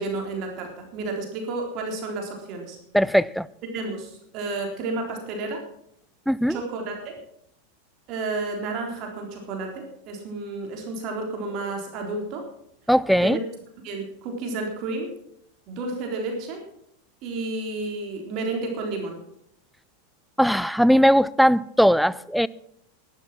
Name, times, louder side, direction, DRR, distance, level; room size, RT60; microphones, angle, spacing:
voice 1, 0.0-2.8 3.7-5.6 6.5-7.1 8.1-12.5 13.2-13.4 13.8-15.1 15.7-16.6 17.2-19.2, right 3 dB, 50° right, 3.8 m, -31 dB
voice 2, 2.9-3.5 6.3-6.6 12.9-13.4 20.4-22.5, equal, ahead, 0.4 m, -19 dB
12.0 x 12.0 x 6.1 m
hypercardioid pair, 120°, 0 cm